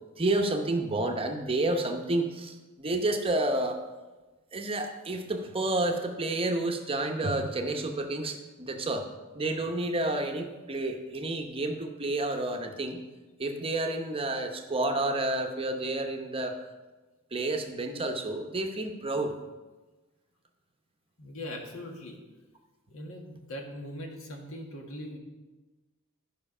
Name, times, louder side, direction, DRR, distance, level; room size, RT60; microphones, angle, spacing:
voice 1, 0.2-3.8 4.5-9.1 9.3-13.0 13.4-16.6 17.3-19.3, right 2 dB, 25° right, 4 dB, 0.8 m, -30 dB
voice 2, 21.2-22.2 22.9-25.2, left 1 dB, 65° left, 2 dB, 1.8 m, -40 dB
12.0 x 5.7 x 5.5 m, 1.2 s
head